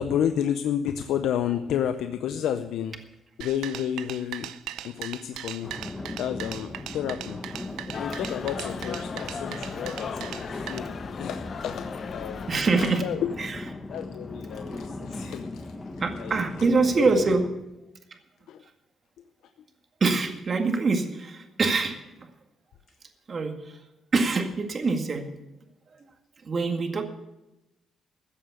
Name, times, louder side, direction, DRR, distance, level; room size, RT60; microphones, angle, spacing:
voice 1, 0.0-3.0 3.4-4.5 4.8-5.7 6.2-7.4 8.0-13.3 13.9-15.7 16.2-16.4 17.0-17.2 18.5-18.6, left 9 dB, 80° left, 9 dB, 0.6 m, -31 dB
sound 1, 3.4-10.8, right 12 dB, 90° right, 0.5 m, -39 dB
sound 2, 5.6-17.5, left 2 dB, 20° left, 1.3 m, -38 dB
sound 3, 7.9-13.0, left 6 dB, 50° left, 1.0 m, -38 dB
voice 2, 12.5-13.0 13.4-13.6 14.7-14.9 16.0-17.4 20.0-22.0 23.3-23.5 24.1-25.3 26.4-27.0, right 4 dB, 40° right, 4 dB, 1.9 m, -24 dB
14.0 x 7.7 x 8.2 m, 0.96 s
cardioid pair, 90°, 0 cm